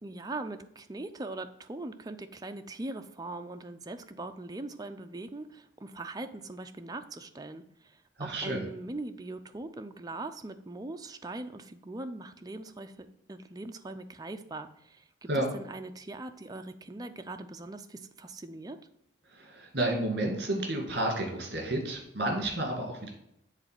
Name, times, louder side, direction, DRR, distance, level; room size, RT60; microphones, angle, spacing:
voice 1, 0.0-18.8, right 2 dB, 20° right, 7 dB, 0.4 m, -41 dB
voice 2, 8.2-8.6 15.3-15.5 19.3-23.1, right 1 dB, 55° right, 1 dB, 2.0 m, -31 dB
7.4 x 3.9 x 6.6 m, 0.76 s
head